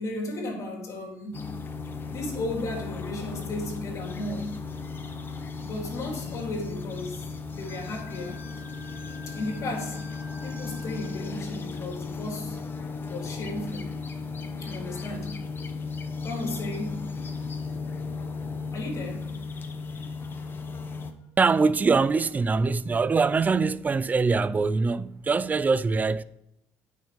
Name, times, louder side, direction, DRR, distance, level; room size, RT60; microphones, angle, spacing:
voice 1, 0.0-1.5 2.1-4.5 5.6-7.3 7.5-8.5 9.3-10.1 10.4-12.6 13.1-13.9 14.6-15.4 16.2-17.0 18.7-19.3, left 2 dB, 55° left, 3.5 m, -35 dB
sound 1, 1.3-21.1, left 4 dB, 35° left, 1.3 m, -35 dB
Wind instrument woodwind instrument, 7.7-11.4, left 3 dB, 50° right, 2.4 m, -48 dB
voice 2, 21.4-26.2, right 4 dB, 25° right, 0.5 m, -23 dB
9.7 x 6.4 x 5.1 m
supercardioid pair, 80°, 6 cm